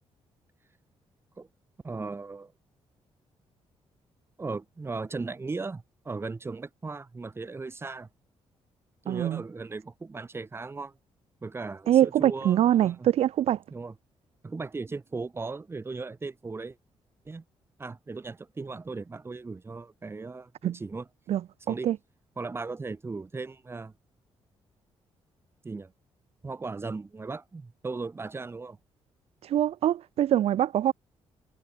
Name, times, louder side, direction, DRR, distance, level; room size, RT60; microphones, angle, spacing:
voice 1, 1.8-2.5 4.4-8.1 9.0-10.9 11.4-13.1 13.7-13.9 14.4-16.8 17.3-17.4 17.8-21.1 21.7-21.9 22.4-23.9 25.6-25.9 26.4-28.8, right 3 dB, 25° right, 7.3 m, -37 dB
voice 2, 9.1-9.4 11.9-13.6 20.6-20.7 21.3-21.4 21.7-22.0 29.4-30.9, right 11 dB, 75° right, 2.4 m, -24 dB
cardioid pair, 130°, 10 cm